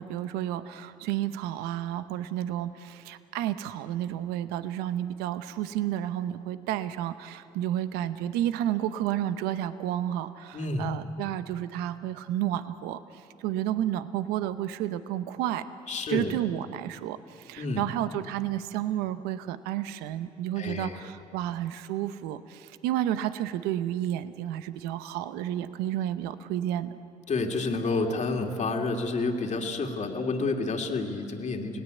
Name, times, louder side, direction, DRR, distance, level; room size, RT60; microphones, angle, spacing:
voice 1, 0.0-15.6 16.1-26.9, right 12 dB, 80° right, 12 dB, 0.8 m, -31 dB
voice 2, 10.5-10.9 15.9-16.3 17.6-17.9 20.6-21.0 27.3-31.8, left 3 dB, 45° left, 2 dB, 2.8 m, -29 dB
30.0 x 18.0 x 8.4 m, 2.5 s
hypercardioid pair, 55°, 16 cm